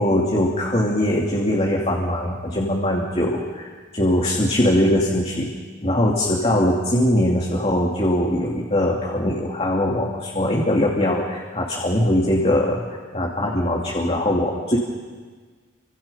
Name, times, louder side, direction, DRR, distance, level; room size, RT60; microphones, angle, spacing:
voice 1, 0.0-5.5 5.8-14.8, left 1 dB, 30° left, -2 dB, 2.8 m, -21 dB
29.0 x 25.5 x 5.7 m, 1.5 s
head